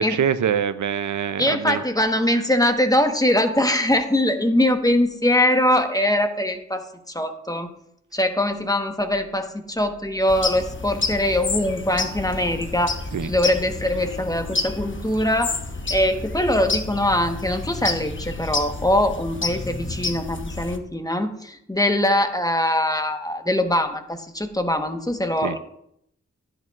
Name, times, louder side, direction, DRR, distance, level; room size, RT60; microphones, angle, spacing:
voice 1, 0.0-1.8 13.1-13.3 25.4-25.6, right 8 dB, 80° right, 12 dB, 0.5 m, -24 dB
voice 2, 1.4-7.7 8.1-13.0 13.2-15.6 15.9-25.6, left 1 dB, 10° left, 6 dB, 1.1 m, -22 dB
sound 1, 10.3-20.8, left 3 dB, 40° left, 1.0 m, -30 dB
11.0 x 10.5 x 2.4 m, 0.74 s
cardioid pair, 40°, 29 cm